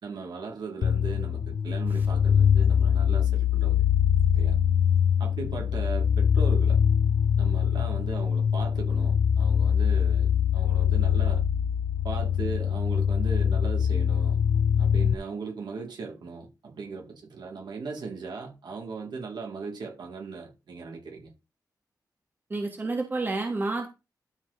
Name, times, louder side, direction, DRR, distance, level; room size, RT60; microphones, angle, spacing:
voice 1, 0.0-3.9 4.3-4.6 5.2-6.8 7.4-11.4 12.0-14.4 14.8-21.3, right 4 dB, 85° right, 3.6 m, -38 dB
sound 1, 0.8-15.1, left 8 dB, 60° left, 0.4 m, -23 dB
voice 2, 22.5-23.9, right 3 dB, 30° right, 1.7 m, -29 dB
12.5 x 4.8 x 4.4 m
wide cardioid pair, 175°, 7 cm